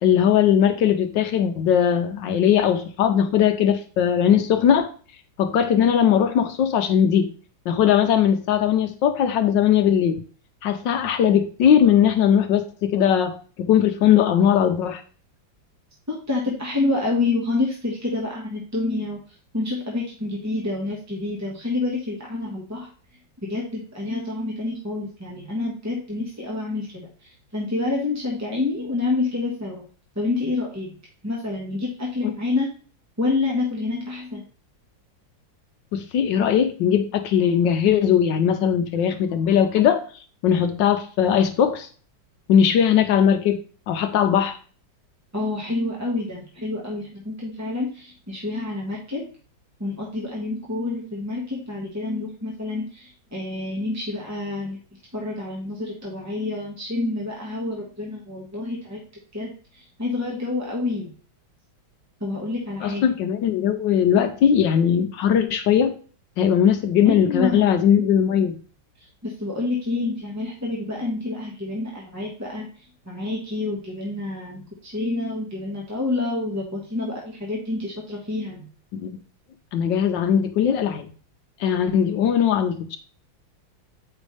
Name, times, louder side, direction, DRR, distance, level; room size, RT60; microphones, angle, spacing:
voice 1, 0.0-4.9 5.4-7.3 7.7-10.2 10.6-15.0 32.2-32.3 35.9-40.0 40.4-41.9 42.5-43.6 43.9-44.6 62.8-65.9 66.4-68.6 78.9-79.2 79.7-81.1 81.6-83.0, left 8 dB, 70° left, 7 dB, 1.3 m, -19 dB
voice 2, 16.1-19.2 19.5-22.9 23.5-29.8 30.1-30.9 31.2-32.7 33.2-34.4 45.3-49.3 49.8-54.8 55.1-59.0 59.3-61.1 62.2-63.0 67.0-67.7 69.0-78.7, left 2 dB, 10° right, -3 dB, 1.1 m, -28 dB
8.2 x 5.2 x 3.3 m, 0.40 s
omnidirectional pair, 2.2 m